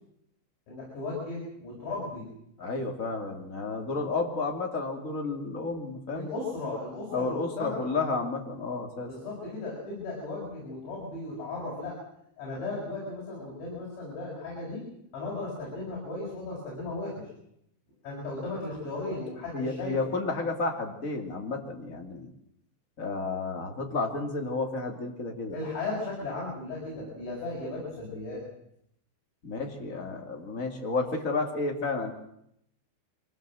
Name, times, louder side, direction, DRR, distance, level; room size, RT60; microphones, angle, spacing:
voice 1, 0.7-2.3 6.1-7.8 9.1-12.0 12.4-14.8 15.1-17.3 18.0-20.0 25.5-28.4, left 2 dB, 75° left, -6 dB, 8.9 m, -36 dB
voice 2, 2.6-6.3 7.1-9.1 19.5-22.3 23.0-25.6 29.4-32.1, left 3 dB, 25° left, 3 dB, 1.9 m, -31 dB
24.0 x 18.5 x 7.7 m, 0.74 s
omnidirectional pair, 5.2 m